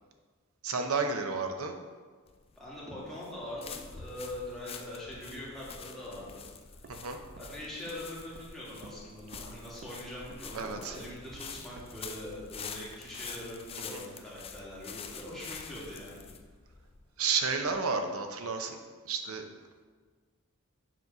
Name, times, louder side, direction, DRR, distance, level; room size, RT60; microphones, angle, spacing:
voice 1, 0.6-1.8 6.9-7.2 10.5-11.0 13.9-14.0 17.2-18.8 19.0-19.4, right 5 dB, 85° right, 5 dB, 0.8 m, -31 dB
sound 1, 2.3-17.8, left 6 dB, 25° left, 0.4 m, -47 dB
voice 2, 2.6-6.4 6.7-6.8 7.4-16.2, left 1 dB, ahead, -8 dB, 2.3 m, -42 dB
Walk footsteps, 6.2-14.1, right 2 dB, 50° right, 0.5 m, -54 dB
7.3 x 4.0 x 5.4 m, 1.5 s
head